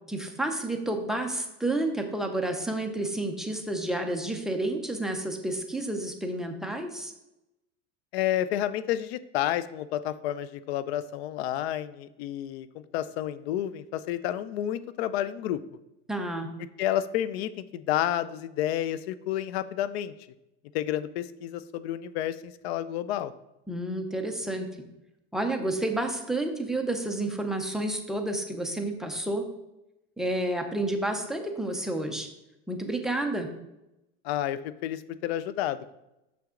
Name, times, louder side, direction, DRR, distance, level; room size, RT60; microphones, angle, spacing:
voice 1, 0.1-7.1 16.1-16.5 23.7-24.7 25.3-29.4 30.2-32.3 32.7-33.5, right 1 dB, ahead, 5 dB, 0.7 m, -30 dB
voice 2, 8.1-15.6 16.8-20.1 20.7-23.3 34.2-35.9, left 12 dB, 90° left, 15 dB, 0.5 m, -30 dB
7.0 x 5.9 x 3.7 m, 0.90 s
supercardioid pair, 140°, 31 cm